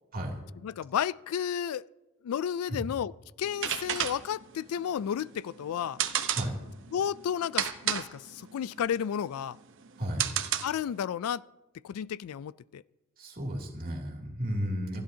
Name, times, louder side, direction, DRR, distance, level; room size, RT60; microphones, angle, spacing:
voice 1, 0.6-1.9 2.2-3.1 3.4-6.0 6.9-9.6 10.6-11.4 11.8-12.8, left 8 dB, 85° left, 0.3 m, -32 dB
sound 1, 3.4-11.0, right 10 dB, 60° right, 0.9 m, -33 dB
voice 2, 10.0-10.3 13.2-15.0, equal, 45° right, 2.7 m, -33 dB
27.5 x 10.5 x 2.8 m
head